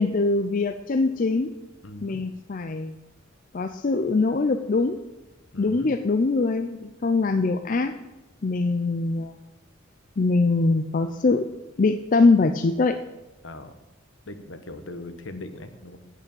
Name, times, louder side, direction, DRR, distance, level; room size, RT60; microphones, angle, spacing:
voice 1, 0.0-1.5 2.0-2.9 3.5-5.0 5.6-7.9 8.4-9.5 10.2-11.5 11.8-13.0, left 3 dB, 40° left, 8 dB, 0.5 m, -23 dB
voice 2, 1.8-2.2 5.5-5.9 13.4-13.7 14.3-16.0, left 2 dB, 70° left, 9 dB, 1.1 m, -39 dB
9.3 x 8.3 x 7.0 m, 1.0 s
head